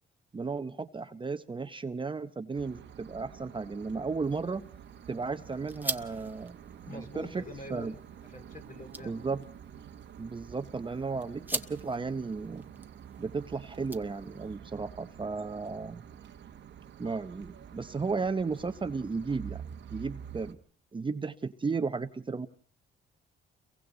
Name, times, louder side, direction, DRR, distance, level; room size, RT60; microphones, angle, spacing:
voice 1, 0.3-4.7 5.1-6.6 6.8-7.4 7.7-8.0 9.0-9.4 10.2-12.6 13.2-16.0 17.0-19.6 19.9-20.6 20.9-22.5, right 4 dB, 25° right, 9 dB, 1.0 m, -34 dB
sound 1, 2.5-20.5, right 9 dB, 65° right, 1.4 m, -48 dB
sound 2, 4.2-14.6, right 2 dB, 10° right, 1.3 m, -43 dB
voice 2, 6.8-8.0 8.3-9.2, left 2 dB, 40° left, 4 dB, 3.4 m, -45 dB
30.0 x 23.0 x 4.0 m, 0.44 s
cardioid pair, 90°, 20 cm